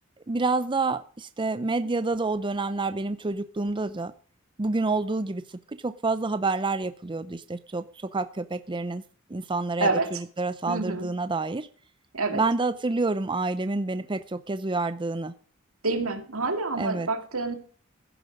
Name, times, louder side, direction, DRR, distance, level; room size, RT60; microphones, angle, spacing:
voice 1, 0.3-4.1 4.6-9.0 9.3-11.7 12.3-15.3 16.8-17.1, right 3 dB, 25° right, 12 dB, 0.6 m, -28 dB
voice 2, 10.7-11.1 12.1-12.4 15.8-17.6, right 3 dB, 85° right, 6 dB, 2.3 m, -27 dB
15.5 x 9.4 x 5.2 m, 0.43 s
head